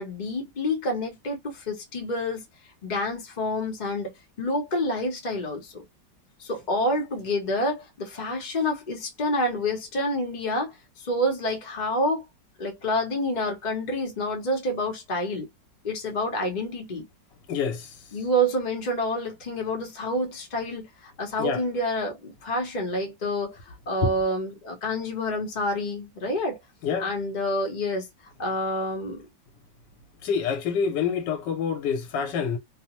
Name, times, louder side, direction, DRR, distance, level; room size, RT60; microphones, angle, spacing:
voice 1, 0.0-2.4 2.8-4.1 4.4-5.8 6.4-10.7 11.1-12.2 12.6-15.5 15.8-17.0 18.1-23.6 23.9-26.6 27.0-28.1 28.4-29.3, left 1 dB, 45° left, 0.6 m, -28 dB
voice 2, 17.5-17.9 21.4-21.6 24.0-24.1 26.8-27.1 30.2-32.6, left 6 dB, 80° left, 1.3 m, -26 dB
3.2 x 2.0 x 2.9 m
omnidirectional pair, 1.9 m